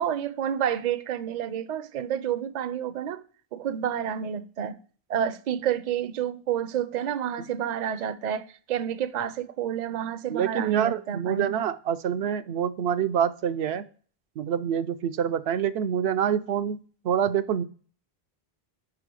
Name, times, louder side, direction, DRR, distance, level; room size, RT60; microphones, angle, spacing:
voice 1, 0.0-3.2 3.5-4.8 5.1-11.5, right 9 dB, 55° right, 0.6 m, -29 dB
voice 2, 10.3-13.9 14.4-16.8 17.0-17.6, right 8 dB, 85° right, 0.8 m, -26 dB
5.5 x 4.9 x 6.0 m
omnidirectional pair, 1.0 m